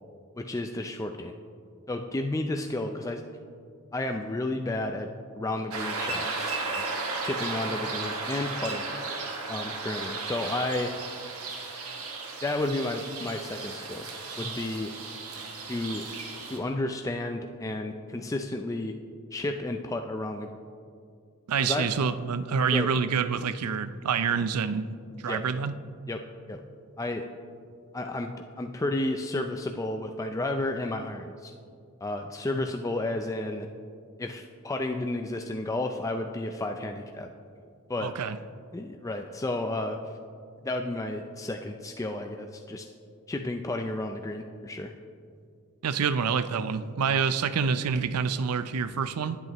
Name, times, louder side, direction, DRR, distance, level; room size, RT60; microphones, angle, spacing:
voice 1, 0.4-1.3 1.9-3.2 3.9-6.9 7.2-8.9 9.5-10.9 12.4-14.0 14.4-14.9 15.7-16.1 16.5-18.9 19.3-20.5 21.6-21.9 22.7-22.9 25.3-25.4 26.1-26.2 26.5-26.6 27.0-27.3 27.9-31.5 32.0-33.7 34.2-37.3 37.9-38.1 38.7-40.0 40.6-42.9 43.3-44.9, left 2 dB, 15° left, 4 dB, 0.4 m, -32 dB
sound 1, 5.7-16.6, right 3 dB, 70° right, 1.6 m, -35 dB
voice 2, 21.5-24.9 25.2-25.8 38.0-38.4 45.8-49.4, right 6 dB, 90° right, 13 dB, 0.5 m, -27 dB
20.0 x 8.1 x 3.0 m, 2.3 s
head